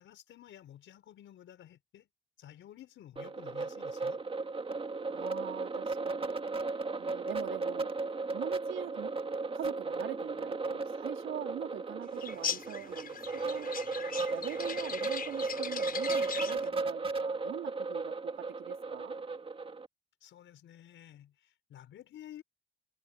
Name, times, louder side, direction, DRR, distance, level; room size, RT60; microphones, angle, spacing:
voice 1, 0.0-2.1 2.4-4.2 20.2-22.4, left 11 dB, 75° left, 5.4 m, -52 dB
sound 1, 3.2-19.9, right 3 dB, 30° right, 2.2 m, -35 dB
voice 2, 5.1-6.4 7.0-7.9 8.3-9.2 9.5-13.7 14.3-19.2, right 12 dB, 80° right, 4.0 m, -43 dB
sound 2, 12.2-16.7, left 7 dB, 45° left, 6.5 m, -39 dB
cardioid pair, 90°, 20 cm